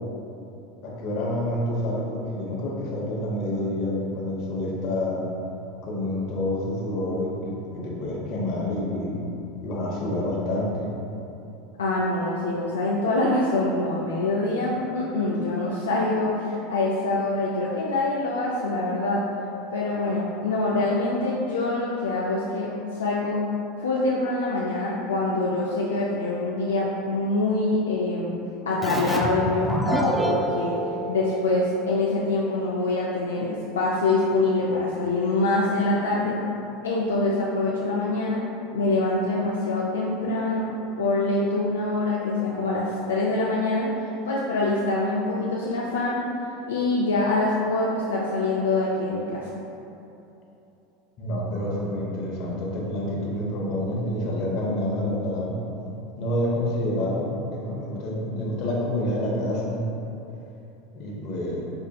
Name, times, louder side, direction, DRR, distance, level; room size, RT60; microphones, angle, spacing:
voice 1, 0.8-5.2 5.8-9.2 9.6-10.9 51.2-55.6 56.2-59.9 60.9-61.6, left 1 dB, 55° left, -4 dB, 0.9 m, -28 dB
voice 2, 11.8-19.2 19.7-23.4 23.8-28.4 28.7-30.8 31.1-36.4 36.8-38.4 38.7-46.3 46.7-49.5, left 2 dB, 85° left, -5 dB, 0.3 m, -25 dB
Keyboard (musical), 28.8-32.2, equal, 5° right, 0.3 m, -28 dB
5.3 x 2.4 x 2.3 m, 2.9 s
hypercardioid pair, 90°, 0 cm